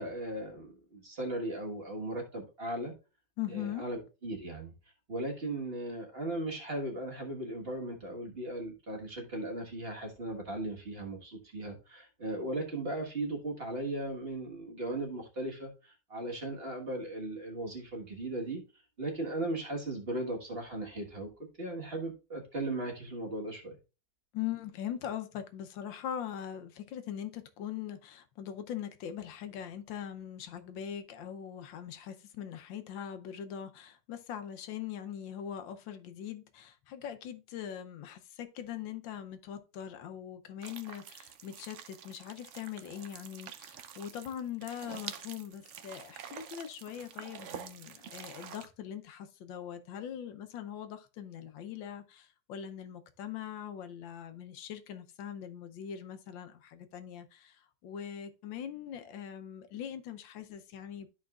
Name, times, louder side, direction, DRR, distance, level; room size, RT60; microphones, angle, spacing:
voice 1, 0.0-2.9 3.5-4.7 5.1-15.7 16.1-18.6 19.0-21.3 21.6-23.7, right 1 dB, 35° right, 1.6 m, -37 dB
voice 2, 3.4-3.9 24.3-57.6 57.8-61.1, left 9 dB, 90° left, 1.5 m, -41 dB
sound 1, 40.6-48.7, right 8 dB, 70° right, 0.7 m, -47 dB
12.5 x 4.9 x 2.4 m
omnidirectional pair, 2.0 m